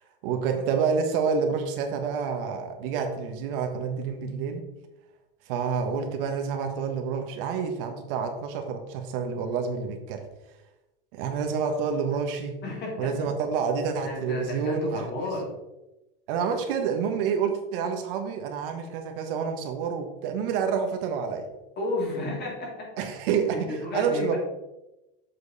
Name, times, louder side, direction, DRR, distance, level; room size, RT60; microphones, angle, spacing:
voice 1, 0.2-4.6 5.5-10.3 11.1-12.6 13.0-15.3 16.3-21.5 23.0-24.4, right 6 dB, 70° right, 5 dB, 1.6 m, -28 dB
voice 2, 12.6-13.3 14.0-15.5 21.8-23.0 23.5-24.4, left 2 dB, 35° left, -2 dB, 3.2 m, -32 dB
7.8 x 6.4 x 4.2 m, 0.97 s
supercardioid pair, 140°, 29 cm